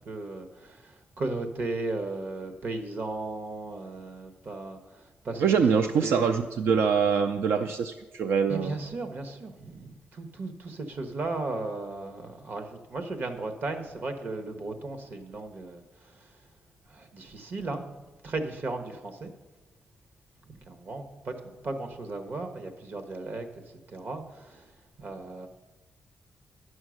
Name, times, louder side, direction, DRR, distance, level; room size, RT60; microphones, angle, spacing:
voice 1, 0.0-5.5 5.8-6.3 8.5-16.4 16.8-18.0 18.2-19.3 20.4-25.5, right 2 dB, 55° right, 6 dB, 1.1 m, -36 dB
voice 2, 5.4-8.8, right 6 dB, 90° right, 7 dB, 0.4 m, -24 dB
9.5 x 6.4 x 6.3 m, 1.2 s
cardioid pair, 95°, 4 cm